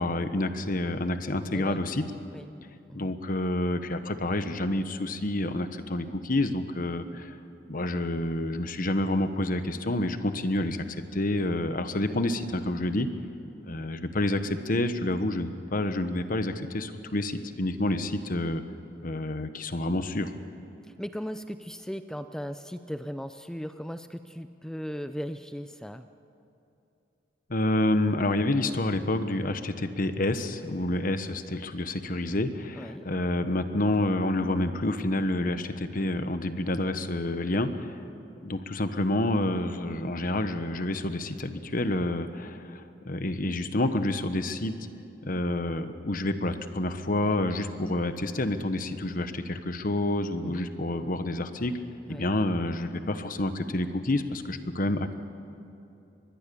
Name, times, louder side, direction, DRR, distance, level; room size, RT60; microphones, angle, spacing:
voice 1, 0.0-2.0 2.9-7.4 7.7-10.8 11.1-13.1 13.7-18.6 19.0-20.3 27.5-38.0 38.4-44.7 45.2-51.7 52.1-55.1, left 1 dB, 50° left, 9 dB, 1.2 m, -28 dB
voice 2, 1.5-1.8 2.3-2.5 2.9-3.1 20.9-26.0 32.7-33.1 50.4-50.7 52.1-52.3, equal, 5° left, 9 dB, 0.5 m, -37 dB
24.5 x 21.0 x 7.0 m, 2.8 s
head